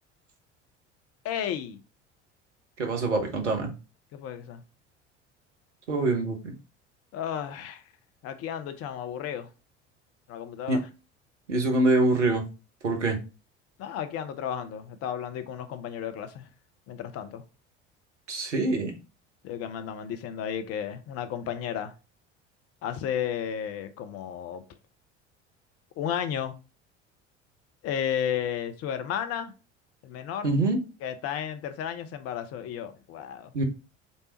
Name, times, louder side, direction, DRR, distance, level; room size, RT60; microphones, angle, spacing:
voice 1, 1.2-1.8 4.1-4.6 7.1-7.8 8.2-9.5 10.3-10.8 13.8-16.5 16.9-17.4 19.4-21.9 22.8-24.6 26.0-26.6 27.8-29.5 30.0-30.6 31.0-33.5, left 9 dB, 40° left, 0.7 m, -33 dB
voice 2, 2.8-3.7 5.9-6.5 10.7-10.8 11.5-12.4 12.8-13.2 18.3-18.9 30.4-30.8 33.5-33.6, right 2 dB, 80° right, 1.1 m, -25 dB
5.4 x 3.4 x 2.8 m
figure-of-eight pair, 65°, 36 cm